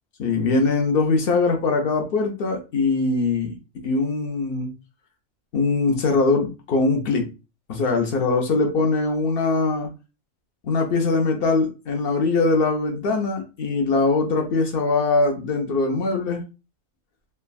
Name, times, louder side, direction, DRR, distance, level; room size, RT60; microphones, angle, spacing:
voice 1, 0.2-3.6 3.8-4.7 5.5-7.3 7.7-9.9 10.6-16.4, left 3 dB, 60° left, 3 dB, 0.6 m, -22 dB
3.3 x 2.0 x 2.2 m, 0.31 s
omnidirectional pair, 1.4 m